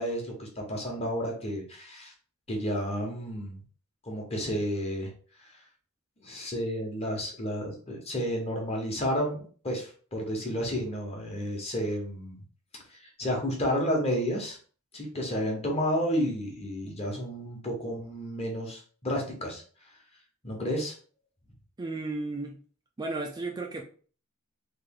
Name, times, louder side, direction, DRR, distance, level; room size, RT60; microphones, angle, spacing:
voice 1, 0.0-2.1 2.5-3.6 4.1-5.1 6.2-12.4 13.2-14.6 14.9-19.6 20.4-20.9, equal, 30° left, 1.1 m, -31 dB
voice 2, 21.8-22.6 23.0-23.8, right 2 dB, 20° right, 0.3 m, -34 dB
3.2 x 2.7 x 3.7 m
head